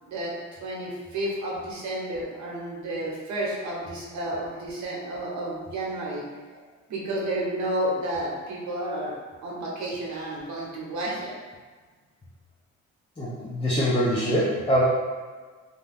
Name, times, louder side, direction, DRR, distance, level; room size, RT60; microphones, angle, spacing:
voice 1, 0.6-6.2 6.9-9.1 9.4-11.3, right 1 dB, 70° right, -4 dB, 1.0 m, -31 dB
voice 2, 13.2-14.8, equal, 20° left, -7 dB, 0.6 m, -24 dB
2.6 x 2.2 x 3.4 m, 1.4 s
cardioid pair, 90°, 30 cm